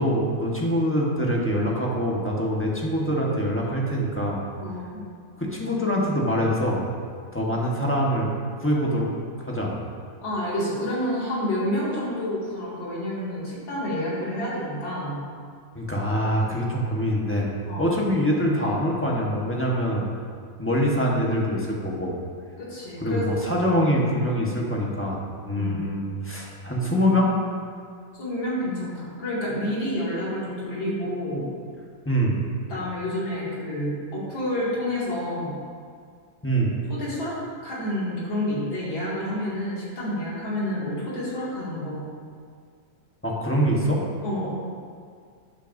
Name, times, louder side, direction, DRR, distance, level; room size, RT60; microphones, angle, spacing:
voice 1, 0.0-4.4 5.4-6.8 7.3-8.3 8.6-9.1 9.4-9.8 15.7-20.1 20.6-22.1 23.0-27.3 32.0-32.4 36.4-36.7 43.2-44.0, equal, 10° left, -3 dB, 1.0 m, -24 dB
voice 2, 4.6-5.0 10.2-15.2 17.7-18.0 22.6-23.4 25.5-25.8 28.2-31.5 32.7-35.6 36.9-37.3 37.6-42.0 44.2-44.5, left 1 dB, 80° left, -8 dB, 3.2 m, -29 dB
12.0 x 8.8 x 2.7 m, 2.1 s
omnidirectional pair, 2.1 m